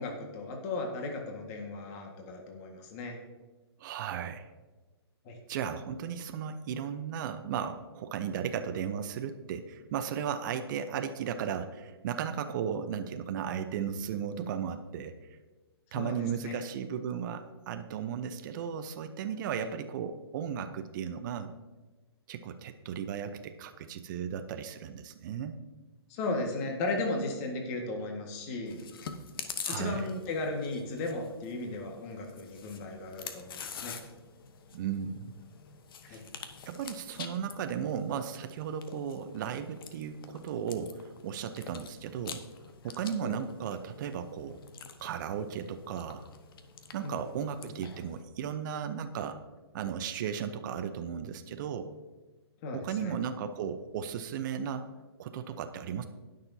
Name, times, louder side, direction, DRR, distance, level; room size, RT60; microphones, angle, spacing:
voice 1, 0.0-3.2 5.3-5.4 15.9-16.2 16.4-16.6 19.6-19.7 26.1-28.8 29.7-34.0 36.0-36.2 43.2-43.3 47.0-47.2 47.6-47.7 52.6-53.1, left 2 dB, 35° left, 2 dB, 1.7 m, -36 dB
voice 2, 3.8-4.5 5.5-15.1 15.9-21.5 22.3-25.6 29.6-30.1 34.7-35.4 36.1-36.2 36.7-42.4 42.8-44.6 45.0-46.3 46.9-49.4 49.7-51.9 52.7-54.9 55.2-56.1, right 8 dB, 45° right, 8 dB, 0.8 m, -35 dB
Chewing mastication, 28.7-48.2, left 6 dB, 55° left, 1.0 m, -47 dB
19.5 x 6.6 x 2.8 m, 1.2 s
hypercardioid pair, 130°, 14 cm